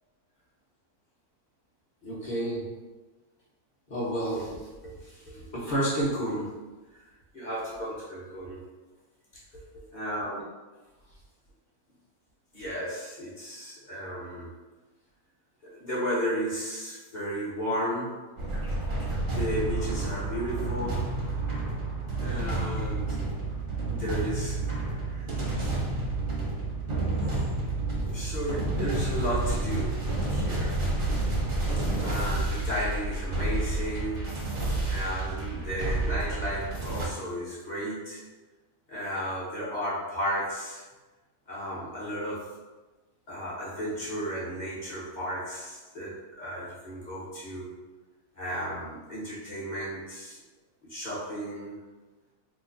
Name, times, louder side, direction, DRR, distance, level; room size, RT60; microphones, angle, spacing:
voice 1, 2.0-2.8 3.9-6.6 7.3-8.6 9.5-9.6 9.9-10.4 12.5-14.5 15.6-18.3 19.3-21.1 22.2-23.2 23.8-25.3 27.2-27.5 28.0-30.0 30.3-30.8 32.0-34.3 34.9-38.3 38.9-40.8 41.5-42.5 43.3-47.7 48.4-50.4 50.9-51.8, equal, 35° left, -7 dB, 0.7 m, -33 dB
sound 1, 18.4-37.1, right 2 dB, 45° right, 0.7 m, -30 dB
3.0 x 2.2 x 3.8 m, 1.2 s
omnidirectional pair, 1.8 m